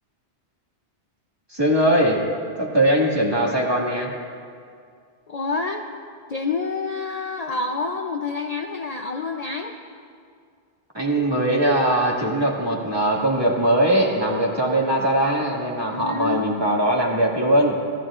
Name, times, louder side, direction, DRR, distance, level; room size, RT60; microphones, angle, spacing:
voice 1, 1.5-2.2 2.6-4.1 10.9-17.8, right 1 dB, 25° right, -3 dB, 2.0 m, -20 dB
voice 2, 5.3-5.8 6.3-9.7 15.9-16.5, left 4 dB, 45° left, 3 dB, 0.7 m, -28 dB
25.5 x 15.5 x 2.5 m, 2.3 s
omnidirectional pair, 1.1 m